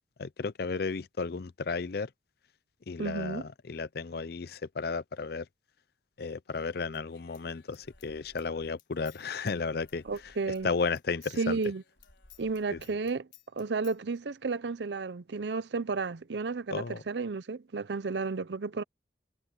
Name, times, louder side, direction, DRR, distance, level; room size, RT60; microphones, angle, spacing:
voice 1, 0.2-2.1 2.9-5.5 6.2-11.6 12.7-12.8 16.7-17.0, left 4 dB, 60° left, 0.5 m, -34 dB
voice 2, 3.0-3.4 10.1-10.7 11.4-11.8 12.4-18.8, right 4 dB, 70° right, 0.6 m, -32 dB
Human voice / Scissors, 6.9-10.7 11.0-14.0, left 7 dB, 85° left, 4.5 m, -58 dB
head